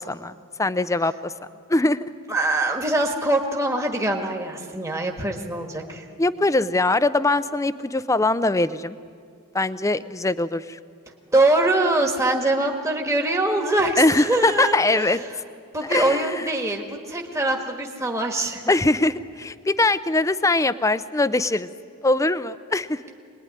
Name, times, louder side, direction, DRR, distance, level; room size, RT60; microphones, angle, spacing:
voice 1, 0.0-1.3 1.7-2.1 6.2-9.0 9.5-10.8 14.0-15.2 15.9-16.5 18.7-21.7 22.0-23.0, left 2 dB, 15° left, 14 dB, 0.6 m, -22 dB
voice 2, 2.3-6.0 11.3-15.1 15.7-18.7, right 2 dB, 15° right, 1 dB, 1.6 m, -23 dB
25.0 x 20.5 x 9.9 m, 2.3 s
head